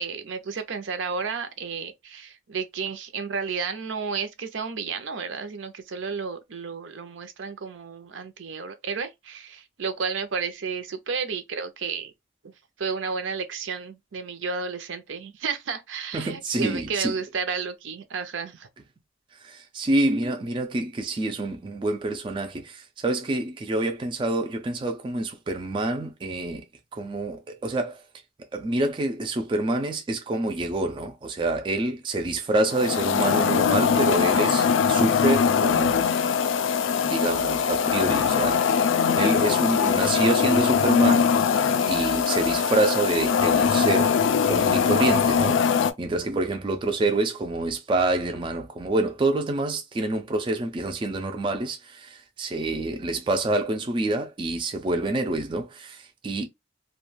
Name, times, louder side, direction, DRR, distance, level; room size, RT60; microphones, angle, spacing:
voice 1, 0.0-12.1 12.4-12.5 12.8-18.7 40.0-40.3, right 5 dB, 80° right, 0.5 m, -32 dB
voice 2, 16.1-17.1 19.4-26.6 26.9-28.0 28.5-36.1 37.0-38.9 39.1-41.3 41.9-44.2 44.4-56.5, right 2 dB, 25° right, 0.3 m, -27 dB
sound 1, 32.7-45.9, left 6 dB, 80° left, 0.3 m, -22 dB
2.3 x 2.2 x 3.1 m
head